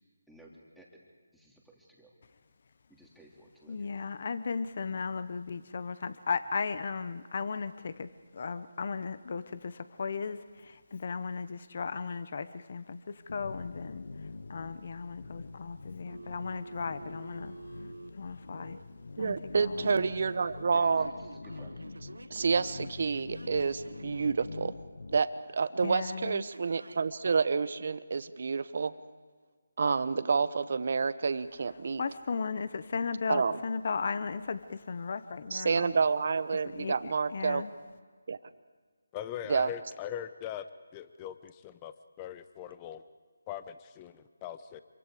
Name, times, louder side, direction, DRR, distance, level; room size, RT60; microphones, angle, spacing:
voice 1, 0.3-1.0 1.3-2.1 2.9-4.0 20.7-21.7, right 1 dB, ahead, -3 dB, 2.8 m, -56 dB
voice 2, 3.7-14.0 14.5-17.5 18.2-18.8 19.2-20.0 25.8-26.5 32.0-35.9 36.7-37.0 37.3-37.7, left 5 dB, 50° left, 13 dB, 1.0 m, -36 dB
sound 1, 13.3-25.2, left 3 dB, 70° left, 0.8 m, -45 dB
Telephone, 16.1-18.8 19.5-20.2 20.7-24.4 26.5-27.1, right 2 dB, 90° right, 1.3 m, -49 dB
voice 3, 19.2-21.1 22.3-24.7 25.1-25.3 25.5-28.9 29.8-32.0 33.3-33.6 35.5-37.6 38.3-38.4 39.5-39.7, right 5 dB, 55° right, 13 dB, 1.0 m, -29 dB
voice 4, 39.1-40.7 40.9-43.0 43.5-44.8, left 10 dB, 20° left, 12 dB, 0.9 m, -41 dB
26.5 x 24.5 x 5.0 m, 1.5 s
figure-of-eight pair, 160°, 0 cm